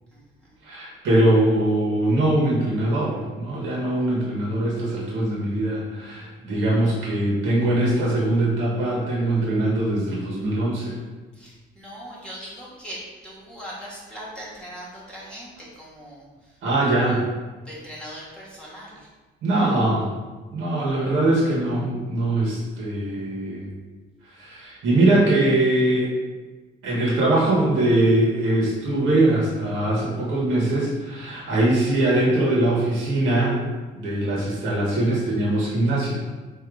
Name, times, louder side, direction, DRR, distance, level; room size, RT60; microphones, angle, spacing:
voice 1, 0.1-0.6 11.3-16.5 17.0-17.2 17.6-19.1, equal, 5° left, -6 dB, 1.2 m, -40 dB
voice 2, 0.6-10.9 16.6-17.2 19.4-20.1 20.5-23.6 24.3-26.1 26.8-33.6 34.0-36.2, right 1 dB, 90° right, -6 dB, 1.5 m, -22 dB
3.7 x 2.9 x 4.7 m, 1.3 s
cardioid pair, 90°, 20 cm